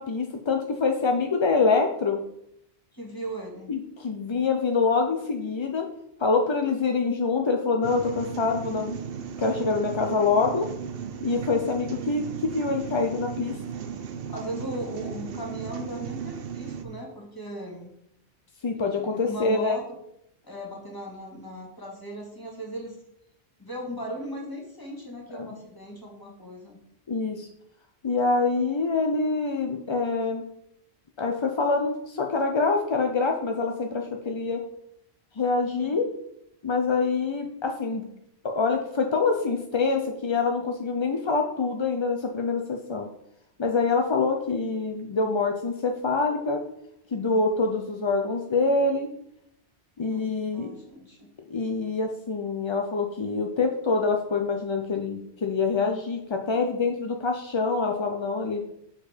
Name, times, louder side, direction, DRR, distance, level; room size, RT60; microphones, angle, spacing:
voice 1, 0.0-2.2 3.7-5.9 6.2-9.0 9.4-10.7 11.2-13.5 18.6-19.8 25.3-25.5 27.1-27.5 28.0-30.4 31.2-34.6 35.4-36.1 36.6-38.1 38.4-43.1 43.6-46.6 47.1-49.1 50.0-50.7 51.5-58.6, left 4 dB, 40° left, 3 dB, 0.4 m, -25 dB
voice 2, 2.9-3.7 14.3-17.9 19.0-19.8 20.4-23.0 23.6-26.8 35.8-36.0 50.1-50.3 50.5-51.3, equal, 20° left, -2 dB, 1.9 m, -37 dB
sound 1, 7.8-16.8, right 7 dB, 65° right, 0.8 m, -36 dB
6.7 x 4.8 x 5.0 m, 0.76 s
omnidirectional pair, 1.1 m